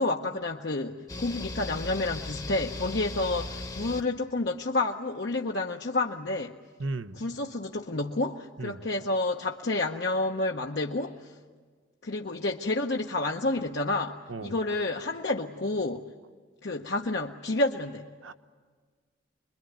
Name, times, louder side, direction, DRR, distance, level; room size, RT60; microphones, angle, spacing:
voice 1, 0.0-6.5 7.2-11.3 12.0-16.0 16.6-18.0, left 2 dB, 55° left, 1 dB, 0.8 m, -29 dB
sound 1, 1.1-4.0, left 2 dB, 20° left, 1.0 m, -37 dB
voice 2, 6.8-7.2 8.6-8.8 14.3-14.6 18.2-18.3, right 2 dB, 85° right, 11 dB, 1.0 m, -35 dB
26.5 x 22.0 x 9.4 m, 1.5 s
head